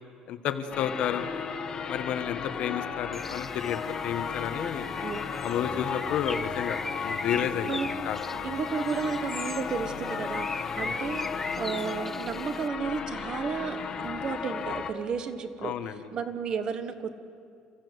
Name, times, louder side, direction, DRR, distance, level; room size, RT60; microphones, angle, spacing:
voice 1, 0.3-1.3 1.9-4.9 5.4-7.8 8.0-8.3 10.8-10.9 15.6-16.0, left 9 dB, 55° left, 9 dB, 1.5 m, -31 dB
sound 1, 0.7-14.9, left 6 dB, 35° left, 1.7 m, -34 dB
Bird, 3.1-12.7, left 2 dB, 10° left, 0.5 m, -40 dB
voice 2, 5.0-5.4 7.7-8.1 8.4-11.3 11.6-15.7 16.1-17.1, right 6 dB, 40° right, 10 dB, 1.4 m, -33 dB
29.0 x 15.0 x 8.2 m, 2.5 s
cardioid pair, 145°, 2 cm